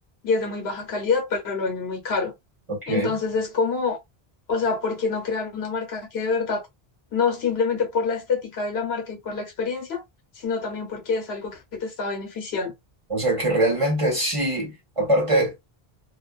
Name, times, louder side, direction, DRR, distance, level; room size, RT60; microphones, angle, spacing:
voice 1, 0.2-2.3 2.9-4.0 4.5-6.6 7.1-10.0 10.4-12.7, left 4 dB, 80° left, 1.2 m, -26 dB
voice 2, 2.7-3.2 13.1-15.5, right 1 dB, 30° right, 1.4 m, -23 dB
2.6 x 2.5 x 2.4 m
omnidirectional pair, 1.0 m